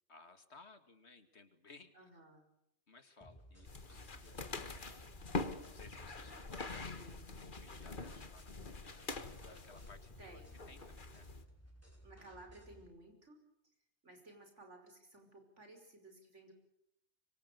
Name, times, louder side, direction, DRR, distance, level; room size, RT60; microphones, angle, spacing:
voice 1, 0.1-1.9 2.9-4.9 5.7-10.4 10.7-11.3, left 3 dB, 65° left, 9 dB, 2.5 m, -60 dB
voice 2, 1.9-2.5 6.5-7.4 10.2-10.6 12.0-13.4 14.0-16.5, right 2 dB, 80° right, 5 dB, 6.1 m, -57 dB
sound 1, 3.2-12.9, equal, 10° left, 5.6 m, -59 dB
sound 2, 3.7-11.4, left 3 dB, 45° left, 1.6 m, -45 dB
26.0 x 23.5 x 6.8 m, 0.79 s
omnidirectional pair, 1.2 m